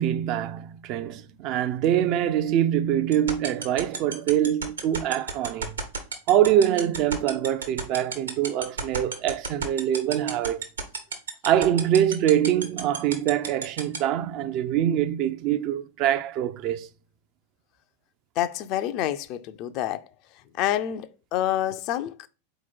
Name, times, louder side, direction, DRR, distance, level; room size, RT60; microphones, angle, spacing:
voice 1, 0.0-5.8 6.3-10.6 11.4-16.9, right 11 dB, 40° right, 0.4 m, -24 dB
sound 1, 3.1-14.0, right 6 dB, 70° right, 1.0 m, -29 dB
voice 2, 18.4-20.0 20.6-22.3, left 12 dB, 40° left, 0.4 m, -28 dB
4.2 x 2.9 x 4.2 m
figure-of-eight pair, 90°, 0 cm